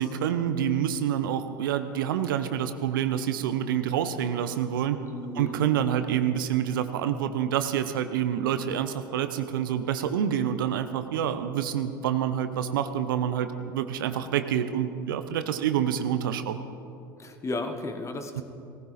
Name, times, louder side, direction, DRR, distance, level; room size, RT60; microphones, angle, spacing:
voice 1, 0.0-5.0 5.4-16.6 18.4-18.5, right 9 dB, 75° right, 10 dB, 0.8 m, -27 dB
voice 2, 5.1-5.6 17.2-18.4, left 2 dB, 25° left, 6 dB, 1.6 m, -34 dB
18.0 x 15.0 x 4.2 m, 2.6 s
hypercardioid pair, 75°, 11 cm